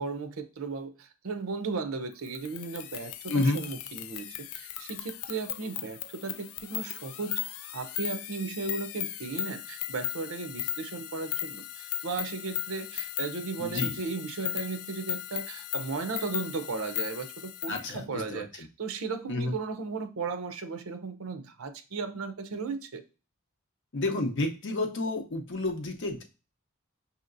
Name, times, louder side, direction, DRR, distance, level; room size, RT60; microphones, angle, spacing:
voice 1, 0.0-23.0, right 4 dB, 80° right, 9 dB, 0.6 m, -36 dB
sound 1, 2.3-17.9, left 11 dB, 85° left, 0.3 m, -37 dB
voice 2, 3.3-3.7 13.6-14.0 17.7-18.7 19.3-19.5 23.9-26.3, left 2 dB, 60° left, 4 dB, 0.7 m, -30 dB
5.6 x 2.8 x 2.5 m, 0.32 s
head